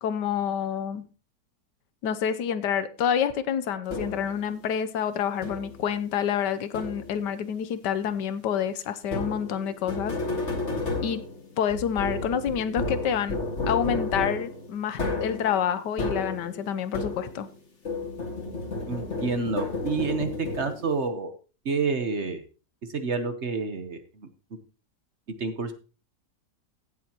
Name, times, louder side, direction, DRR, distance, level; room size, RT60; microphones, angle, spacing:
voice 1, 0.0-1.1 2.0-10.1 11.0-11.2 11.6-13.4 13.7-17.5, left 8 dB, 85° left, 1.5 m, -28 dB
sound 1, 3.9-4.4 5.4-5.9 6.7-7.3 9.0-17.6 17.8-21.0, left 3 dB, 45° left, 2.3 m, -32 dB
voice 2, 18.9-21.3 21.6-22.4 22.9-24.3 25.4-25.7, right 4 dB, 45° right, 1.2 m, -29 dB
16.0 x 7.6 x 3.0 m
omnidirectional pair, 1.8 m